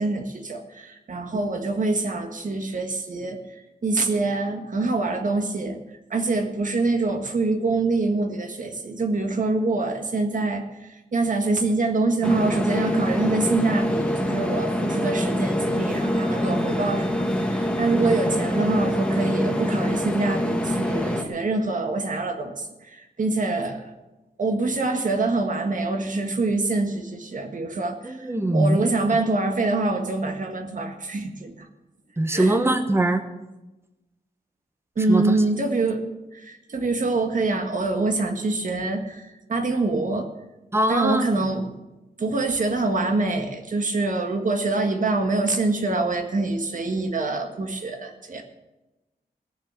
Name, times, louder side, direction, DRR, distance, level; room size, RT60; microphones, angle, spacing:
voice 1, 0.0-5.8 6.1-23.9 24.4-28.3 28.5-31.7 32.3-32.6 35.0-36.0 36.3-40.3 40.9-41.7 42.2-48.4, right 3 dB, 55° right, 5 dB, 1.7 m, -25 dB
sound 1, 12.2-21.2, equal, 5° left, 1.3 m, -25 dB
voice 2, 18.0-18.4 28.0-28.8 32.2-33.2 35.1-35.4 40.7-41.2, right 1 dB, 15° right, 8 dB, 1.1 m, -22 dB
17.5 x 7.4 x 7.6 m, 1.1 s
wide cardioid pair, 145°, 16 cm